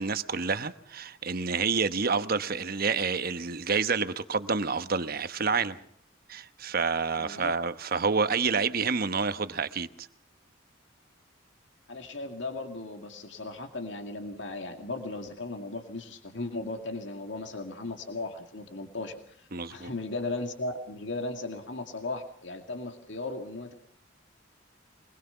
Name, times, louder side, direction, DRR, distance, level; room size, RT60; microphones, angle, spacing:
voice 1, 0.0-5.8 6.3-10.1 19.5-19.9, right 5 dB, 50° right, 1.0 m, -28 dB
voice 2, 7.2-7.5 11.9-23.7, left 2 dB, 65° left, 2.2 m, -36 dB
24.0 x 21.0 x 5.7 m
head